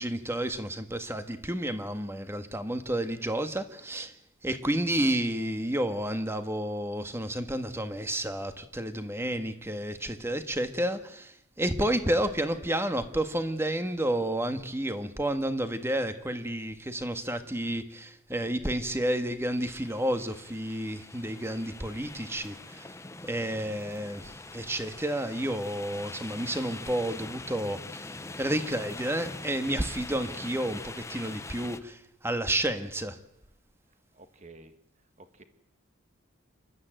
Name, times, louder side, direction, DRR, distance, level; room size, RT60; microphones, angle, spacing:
voice 1, 0.0-4.1 4.4-22.9 23.2-33.2, right 1 dB, 10° right, 8 dB, 1.5 m, -31 dB
sound 1, 19.5-31.8, left 3 dB, 15° left, 0.8 m, -43 dB
voice 2, 34.1-34.7 35.2-35.4, right 2 dB, 35° right, 9 dB, 1.8 m, -51 dB
28.0 x 13.0 x 9.1 m, 0.79 s
head